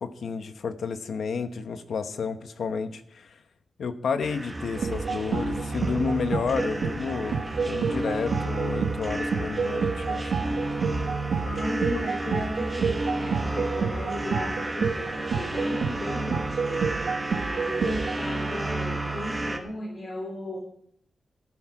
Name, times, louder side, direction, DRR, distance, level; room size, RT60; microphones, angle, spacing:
voice 1, 0.0-3.4 3.8-10.6 11.4-11.6, left 5 dB, 70° left, 9 dB, 1.1 m, -31 dB
sound 1, 4.2-19.6, right 2 dB, 15° right, 1.3 m, -32 dB
sound 2, 4.8-18.2, right 5 dB, 80° right, 1.1 m, -30 dB
voice 2, 11.4-17.0 17.5-20.6, left 1 dB, 45° left, -2 dB, 3.7 m, -35 dB
13.5 x 12.0 x 4.8 m, 0.67 s
wide cardioid pair, 165°, 0 cm